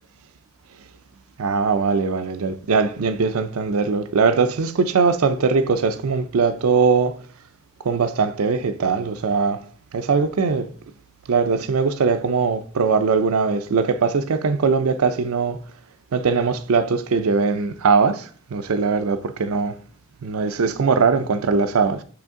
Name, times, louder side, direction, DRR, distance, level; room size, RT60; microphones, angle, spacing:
voice 1, 1.4-7.2 7.8-9.6 9.9-10.7 11.3-15.6 16.1-19.8 20.2-22.0, right 5 dB, 90° right, 0.5 m, -20 dB
7.9 x 3.4 x 3.6 m
head